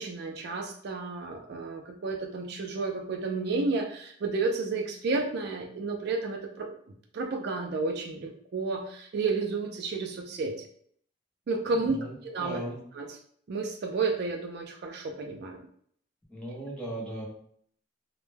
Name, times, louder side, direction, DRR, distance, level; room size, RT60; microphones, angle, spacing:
voice 1, 0.0-6.7 7.1-10.6 11.5-12.0 12.2-12.6 12.9-13.2 13.5-15.7, right 3 dB, 55° right, 3 dB, 0.3 m, -31 dB
voice 2, 11.8-12.8 16.3-17.3, right 1 dB, 5° left, -5 dB, 0.7 m, -37 dB
2.1 x 2.1 x 3.1 m, 0.62 s
head